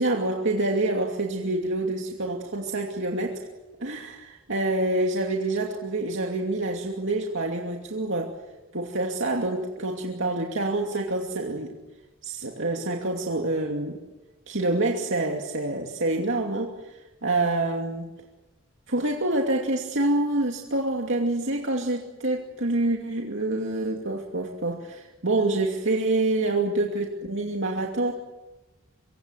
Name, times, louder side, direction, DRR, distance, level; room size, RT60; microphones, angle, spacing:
voice 1, 0.0-3.4 3.8-8.3 8.7-11.8 12.2-14.0 14.5-18.1 18.9-28.1, right 2 dB, 65° right, 1 dB, 2.6 m, -27 dB
25.0 x 25.0 x 8.1 m, 1.1 s
head